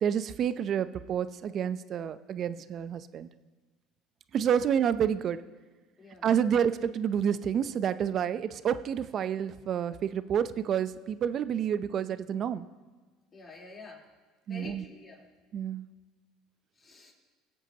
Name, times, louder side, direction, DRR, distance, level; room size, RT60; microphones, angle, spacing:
voice 1, 0.0-3.3 4.3-5.4 6.2-12.7 14.5-14.8 15.5-15.9, right 8 dB, 50° right, 14 dB, 0.5 m, -29 dB
voice 2, 6.0-6.3 13.3-14.0 14.5-15.3 16.8-17.1, left 3 dB, 35° left, -2 dB, 3.4 m, -48 dB
24.5 x 8.3 x 2.8 m, 1.3 s
supercardioid pair, 90°, 0 cm